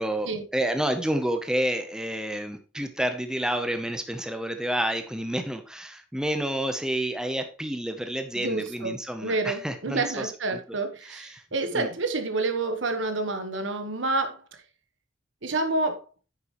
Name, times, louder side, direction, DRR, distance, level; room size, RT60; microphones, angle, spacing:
voice 1, 0.0-10.6 11.0-11.4 11.7-11.9, right 1 dB, 5° right, 7 dB, 0.7 m, -29 dB
voice 2, 8.4-14.4 15.4-16.0, right 3 dB, 80° right, 6 dB, 1.3 m, -28 dB
9.2 x 6.7 x 3.1 m, 0.34 s
head